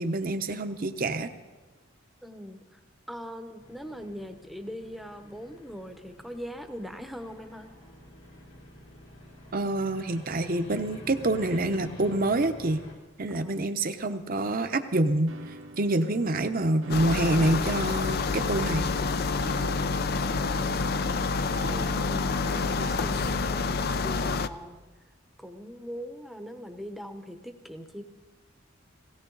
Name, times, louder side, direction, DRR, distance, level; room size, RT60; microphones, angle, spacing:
voice 1, 0.0-1.3 9.5-12.8 13.2-15.3 15.8-18.9, right 2 dB, 45° right, 8 dB, 0.8 m, -27 dB
voice 2, 2.2-2.8 3.1-7.7 13.3-13.6 21.6-24.8 25.4-28.0, equal, ahead, 6 dB, 0.9 m, -41 dB
sound 1, 3.6-12.9, left 1 dB, 70° left, 2.6 m, -48 dB
sound 2, 15.3-23.5, right 2 dB, 80° right, 1.0 m, -45 dB
sound 3, 16.9-24.5, left 4 dB, 50° left, 0.5 m, -28 dB
17.5 x 17.0 x 4.0 m, 1.3 s
head